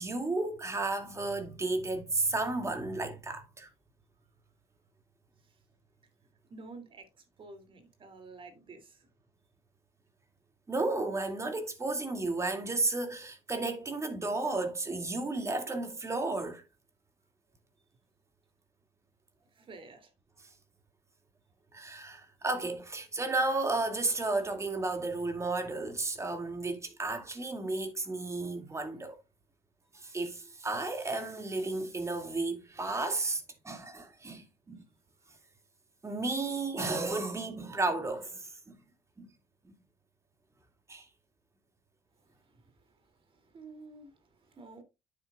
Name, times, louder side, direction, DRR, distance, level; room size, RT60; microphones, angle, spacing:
voice 1, 0.0-3.7 10.7-16.6 21.7-29.2 29.9-34.8 36.0-38.8 39.2-39.3 40.9-41.1, right 2 dB, 25° right, 2.5 m, -33 dB
voice 2, 6.5-9.1 19.4-20.1 35.2-35.4 42.2-44.8, right 3 dB, 50° right, 2.9 m, -51 dB
9.4 x 8.2 x 2.5 m
supercardioid pair, 75°, 11 cm